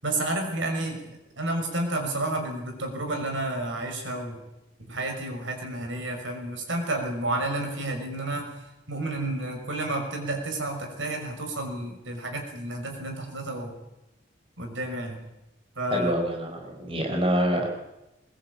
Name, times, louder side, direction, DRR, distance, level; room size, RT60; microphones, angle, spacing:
voice 1, 0.0-4.4 4.8-8.5 8.9-13.7 14.6-15.2 15.8-16.1, right 2 dB, 85° right, 4 dB, 6.2 m, -31 dB
voice 2, 15.9-17.7, right 1 dB, 30° right, 2 dB, 4.5 m, -26 dB
23.0 x 21.0 x 8.7 m, 0.94 s
head